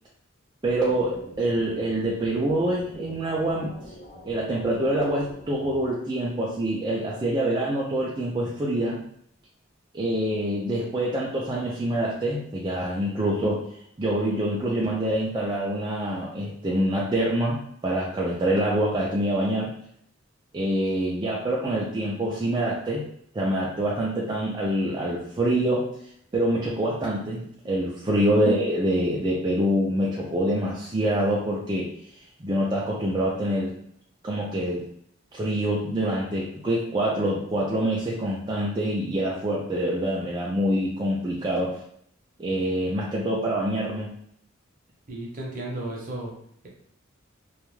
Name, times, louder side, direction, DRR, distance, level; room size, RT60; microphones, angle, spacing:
sound 1, 0.6-5.9, equal, 60° left, 0.8 m, -45 dB
voice 1, 0.6-3.7 4.3-9.0 9.9-13.6 14.0-19.7 20.5-23.0 23.3-25.9 26.3-31.9 32.4-33.7 34.2-34.8 35.3-41.8 42.4-44.1, right 1 dB, 20° right, -5 dB, 0.4 m, -25 dB
voice 2, 45.1-46.3, right 1 dB, 45° right, -2 dB, 0.7 m, -34 dB
2.3 x 2.2 x 3.1 m, 0.68 s
head